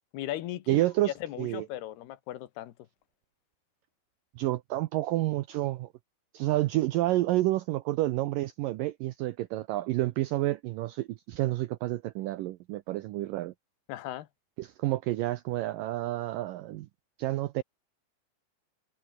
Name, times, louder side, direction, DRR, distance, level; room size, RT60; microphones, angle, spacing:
voice 1, 0.1-2.7 13.9-14.3, left 14 dB, 75° left, 3.2 m, -37 dB
voice 2, 0.7-1.7 4.4-5.9 6.3-13.5 14.6-16.9 17.2-17.6, right 16 dB, 85° right, 1.9 m, -29 dB
omnidirectional pair, 4.8 m